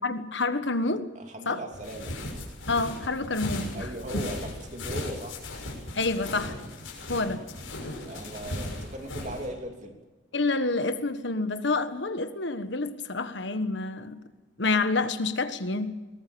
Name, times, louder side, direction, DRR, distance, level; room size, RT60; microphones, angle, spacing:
voice 1, 0.0-1.1 1.4-1.6 2.7-3.9 5.9-6.6 7.1-7.5 10.3-14.2 14.6-15.9, left 3 dB, 65° left, 1.4 m, -28 dB
voice 2, 1.1-2.1 3.7-5.4 8.0-10.0, right 1 dB, 40° right, 3.1 m, -38 dB
sound 1, 1.7-9.5, left 1 dB, 85° left, 6.3 m, -37 dB
22.0 x 19.5 x 6.9 m
head